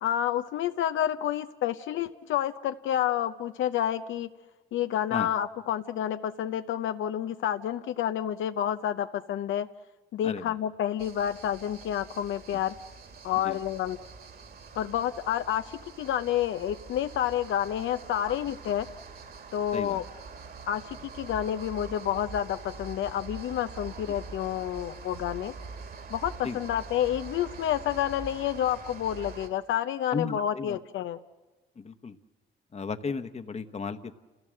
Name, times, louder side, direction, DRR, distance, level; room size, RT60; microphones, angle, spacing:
voice 1, 0.0-4.3 4.7-9.7 10.1-12.8 13.2-14.0 14.8-18.9 19.5-20.0 20.7-25.5 26.1-31.2, left 10 dB, 75° left, 10 dB, 0.7 m, -29 dB
voice 2, 10.2-10.5 13.4-13.6 18.3-18.4 19.7-20.0 26.4-26.6 30.1-30.8 31.8-32.2 32.7-34.1, left 5 dB, 35° left, 8 dB, 1.1 m, -34 dB
sound 1, 11.0-29.5, right 4 dB, 50° right, 2.5 m, -44 dB
29.0 x 16.0 x 7.7 m, 1.2 s
cardioid pair, 90°, 20 cm